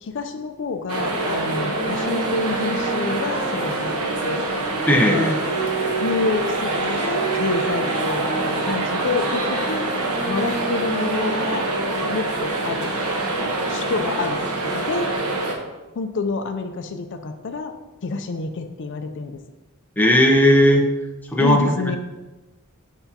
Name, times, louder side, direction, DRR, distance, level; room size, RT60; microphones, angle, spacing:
voice 1, 0.0-4.5 5.1-5.3 6.0-9.9 10.3-11.7 12.1-12.9 13.7-15.1 16.0-19.4 21.4-22.0, left 4 dB, 55° left, 7 dB, 0.4 m, -28 dB
sound 1, 0.9-15.5, right 2 dB, 90° right, 1.1 m, -25 dB
sound 2, 1.0-6.5 7.1-12.3, right 3 dB, 35° right, 1.4 m, -32 dB
voice 2, 4.9-5.4 20.0-20.9 21.3-21.6, left 1 dB, 10° left, 1 dB, 0.7 m, -16 dB
7.9 x 5.6 x 2.8 m, 1.1 s
head